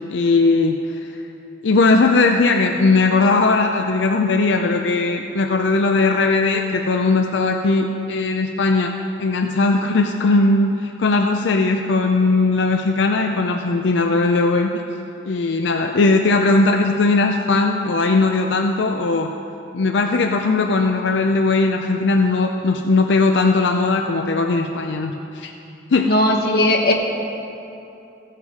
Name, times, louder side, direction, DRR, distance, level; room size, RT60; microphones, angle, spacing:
voice 1, 0.1-0.8 1.6-8.9 9.2-14.7 15.2-19.3 19.7-25.5 25.9-26.1, left 3 dB, 75° left, 4 dB, 0.5 m, -18 dB
voice 2, 26.0-26.9, left 1 dB, 55° left, 1 dB, 1.3 m, -17 dB
15.5 x 7.4 x 4.7 m, 2.9 s
head